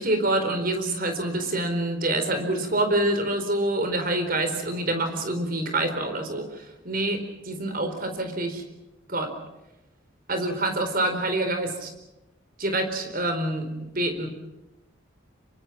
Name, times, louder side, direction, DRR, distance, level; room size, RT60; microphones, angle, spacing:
voice 1, 0.0-8.6 9.1-9.3 10.3-11.9 12.6-13.7 13.9-14.3, right 1 dB, 45° right, 7 dB, 4.3 m, -26 dB
26.5 x 24.0 x 6.0 m, 0.98 s
head